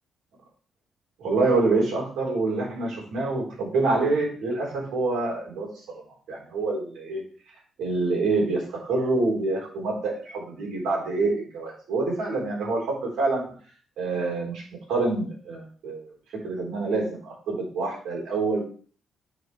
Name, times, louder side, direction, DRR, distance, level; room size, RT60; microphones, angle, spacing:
voice 1, 1.2-5.7 6.3-7.2 7.8-13.4 14.0-14.6 14.9-16.1 16.4-18.6, right 3 dB, 80° right, -3 dB, 3.8 m, -26 dB
9.5 x 4.8 x 3.2 m, 0.42 s
supercardioid pair, 65°, 0 cm